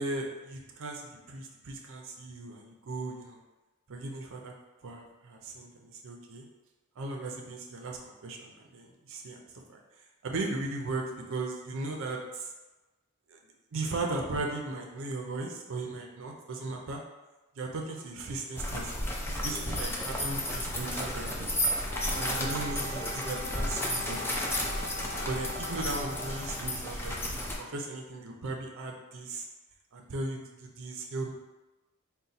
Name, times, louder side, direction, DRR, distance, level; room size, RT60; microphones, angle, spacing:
voice 1, 0.0-3.4 3.9-4.5 4.8-6.5 7.0-9.4 9.7-9.8 10.2-12.5 13.3-13.4 13.7-17.0 17.6-21.5 22.1-24.7 25.3-29.5 29.9-31.3, right 2 dB, 65° right, 1 dB, 0.5 m, -37 dB
sound 1, 18.6-27.6, left 1 dB, 10° left, 0.4 m, -33 dB
Wind instrument woodwind instrument, 21.9-26.7, left 1 dB, 55° left, 1.0 m, -42 dB
4.0 x 2.2 x 4.0 m, 1.1 s
head